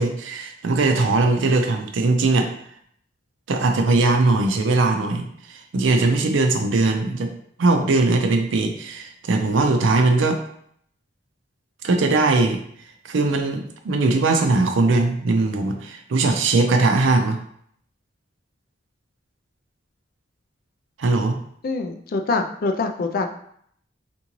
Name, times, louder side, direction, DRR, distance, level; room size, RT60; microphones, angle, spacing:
voice 1, 0.0-2.5 3.5-7.3 7.6-10.4 11.8-12.6 13.0-17.4 21.0-21.4, right 3 dB, 80° right, 5 dB, 0.5 m, -20 dB
voice 2, 21.6-23.3, left 3 dB, 45° left, 6 dB, 0.3 m, -24 dB
3.7 x 2.6 x 2.9 m, 0.66 s
head